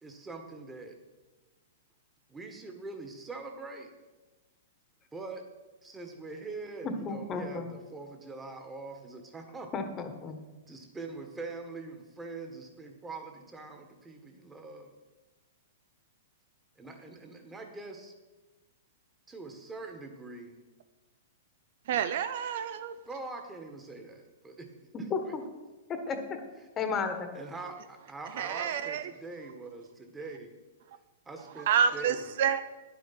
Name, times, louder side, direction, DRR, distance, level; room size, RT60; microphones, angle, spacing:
voice 1, 0.0-1.0 2.3-3.9 5.1-5.4 5.8-9.7 10.7-14.9 16.8-18.1 19.3-20.6 23.1-24.7 25.0-25.4 27.3-30.5 31.3-32.2, right 3 dB, 15° right, 4 dB, 1.6 m, -43 dB
voice 2, 6.8-7.7 9.7-10.4 24.9-25.4 25.9-26.4 26.8-27.3, left 4 dB, 25° left, 7 dB, 1.4 m, -33 dB
voice 3, 21.9-22.9 28.4-29.0 31.7-32.6, right 8 dB, 60° right, 11 dB, 0.6 m, -28 dB
9.9 x 7.6 x 5.9 m, 1.2 s
hypercardioid pair, 115°, 0 cm